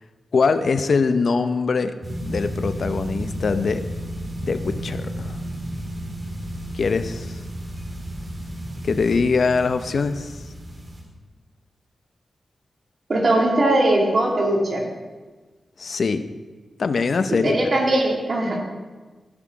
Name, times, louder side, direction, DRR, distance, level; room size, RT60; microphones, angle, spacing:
voice 1, 0.3-2.0 2.2-3.8 4.4-5.4 6.7-7.4 8.8-10.4 15.8-16.2 16.8-17.7, left 4 dB, 65° left, 10 dB, 0.7 m, -22 dB
sound 1, 2.0-11.0, right 1 dB, 30° right, 3.6 m, -32 dB
voice 2, 13.1-14.9 17.4-18.6, right 1 dB, 55° right, -1 dB, 2.4 m, -20 dB
15.0 x 6.0 x 4.7 m, 1.3 s
cardioid pair, 65°, 0 cm